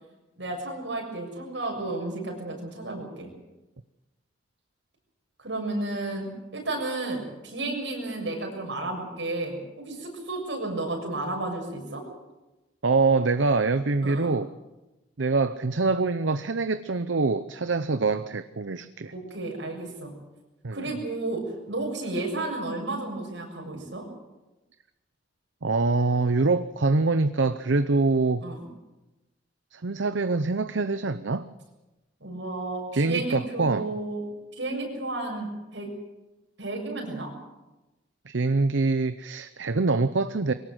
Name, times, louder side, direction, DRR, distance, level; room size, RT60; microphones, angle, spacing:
voice 1, 0.4-3.3 5.4-12.0 14.0-14.3 19.1-20.1 20.7-24.1 28.4-28.6 32.2-34.3 34.6-35.9 36.6-37.3, right 2 dB, 75° right, 1 dB, 6.9 m, -32 dB
voice 2, 12.8-14.5 15.2-19.1 20.6-20.9 25.6-28.4 29.7-31.5 32.9-33.9 38.3-40.5, right 3 dB, 90° right, 12 dB, 0.8 m, -24 dB
23.0 x 18.5 x 7.7 m, 1.0 s
head